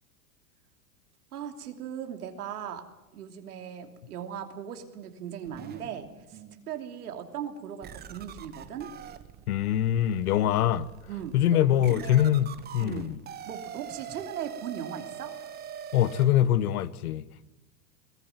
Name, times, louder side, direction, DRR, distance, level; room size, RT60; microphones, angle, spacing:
voice 1, 1.3-2.8 3.1-8.9 11.1-12.3 12.8-13.2 13.5-15.3, right 8 dB, 90° right, 3.1 m, -38 dB
sound 1, 5.5-6.6 7.2-7.3 7.8-16.3, right 9 dB, 20° right, 1.2 m, -44 dB
voice 2, 9.5-10.9 11.3-13.2 15.9-17.5, left 11 dB, 75° left, 1.2 m, -24 dB
21.5 x 15.5 x 9.5 m
supercardioid pair, 140°, 44 cm